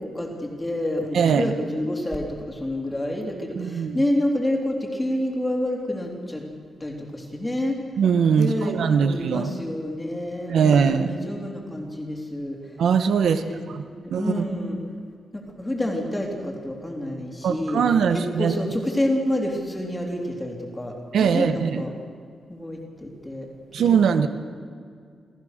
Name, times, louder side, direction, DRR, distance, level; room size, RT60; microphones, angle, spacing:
voice 1, 0.0-6.4 6.8-7.8 8.4-12.6 13.2-14.8 15.3-17.8 18.1-20.9 21.2-21.9 22.5-23.5 23.8-24.3, left 1 dB, 10° left, 0 dB, 3.2 m, -28 dB
voice 2, 1.1-1.5 3.6-4.0 8.0-9.5 10.5-11.1 12.8-14.4 17.4-18.5 21.1-21.8 23.7-24.3, right 6 dB, 75° right, 9 dB, 1.1 m, -21 dB
28.5 x 14.5 x 6.6 m, 2.2 s
wide cardioid pair, 170°, 0 cm